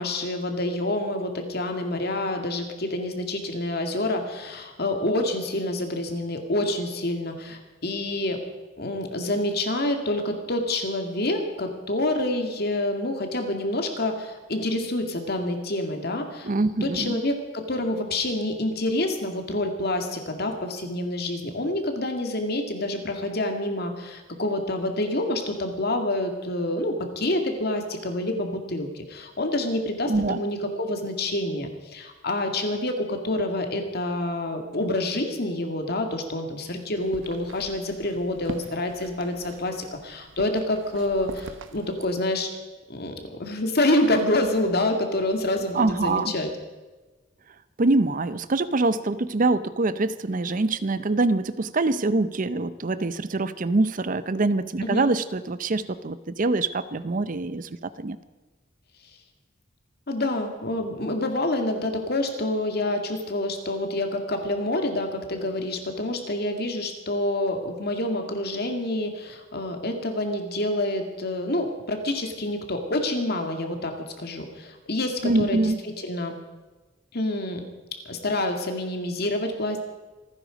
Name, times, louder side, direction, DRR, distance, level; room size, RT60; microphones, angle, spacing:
voice 1, 0.0-8.4 8.8-16.5 16.8-42.5 42.9-46.5 54.8-55.1 60.1-76.4 77.1-77.6 78.1-79.8, left 1 dB, 55° left, 5 dB, 2.2 m, -27 dB
voice 2, 16.4-17.2 30.1-30.4 45.7-46.3 47.8-58.2 75.2-75.8, right 2 dB, 40° right, 15 dB, 0.6 m, -24 dB
sound 1, 37.0-42.1, right 2 dB, 75° right, 1.2 m, -42 dB
27.0 x 9.9 x 5.2 m, 1.2 s
head